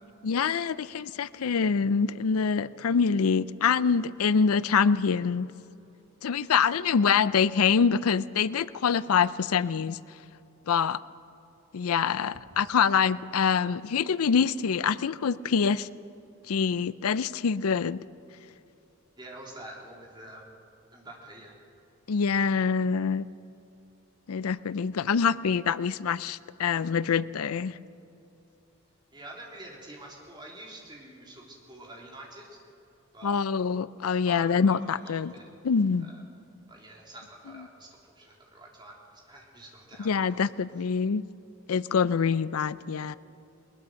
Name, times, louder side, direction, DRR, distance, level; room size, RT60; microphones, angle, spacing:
voice 1, 0.2-5.5 6.2-10.0 10.7-11.0 11.7-15.9 16.5-18.0 22.1-23.3 24.3-27.8 33.2-35.3 35.6-36.1 40.0-41.2 41.7-43.2, left 6 dB, 85° left, 17 dB, 0.5 m, -25 dB
voice 2, 19.2-20.5 20.9-21.6 29.1-32.6 33.1-33.4 34.2-35.5 36.0-36.2 36.7-40.4 40.7-40.8, right 1 dB, 20° right, -2 dB, 3.5 m, -47 dB
21.0 x 20.5 x 6.4 m, 2.9 s
head